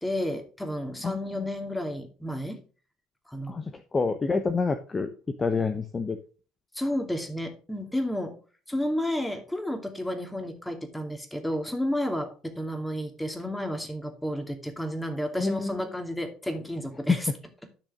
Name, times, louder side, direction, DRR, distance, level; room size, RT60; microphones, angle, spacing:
voice 1, 0.0-2.6 3.3-3.5 6.7-8.4 8.7-17.3, left 1 dB, 5° left, 6 dB, 2.6 m, -31 dB
voice 2, 1.0-1.5 3.5-6.2 15.4-15.8 17.1-17.2, left 4 dB, 25° left, 9 dB, 1.0 m, -28 dB
12.0 x 6.3 x 3.8 m, 0.36 s
hypercardioid pair, 60°, 0 cm